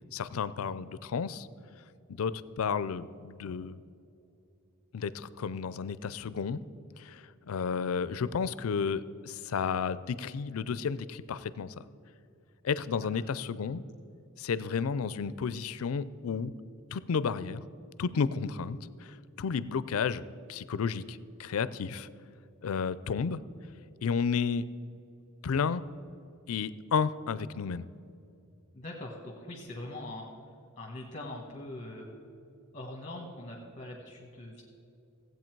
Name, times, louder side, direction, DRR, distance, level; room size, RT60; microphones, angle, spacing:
voice 1, 0.1-1.5 2.1-3.8 4.9-6.6 7.0-11.7 12.6-13.8 14.4-16.5 16.9-17.6 18.0-20.2 20.5-22.1 22.6-23.4 24.0-24.7 25.4-25.8 26.5-27.8, left 6 dB, 80° left, 16 dB, 0.4 m, -32 dB
voice 2, 28.7-30.3 30.8-32.1 32.7-34.6, left 1 dB, 35° left, 0 dB, 1.2 m, -42 dB
16.0 x 8.1 x 4.6 m, 2.7 s
head